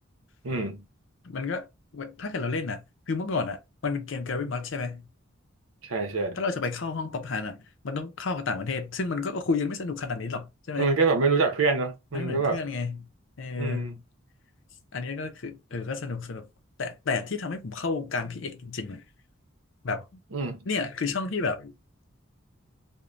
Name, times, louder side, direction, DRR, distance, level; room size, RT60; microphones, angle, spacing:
voice 1, 0.4-0.8 5.8-6.4 10.8-12.6 13.6-13.9 20.3-20.6, right 4 dB, 80° right, 0.7 m, -26 dB
voice 2, 1.2-1.7 1.9-5.1 6.3-10.9 12.1-13.1 13.4-14.0 14.9-16.5 16.8-19.0 19.8-20.2 20.7-21.7, left 4 dB, 65° left, 0.6 m, -31 dB
2.5 x 2.2 x 3.1 m
head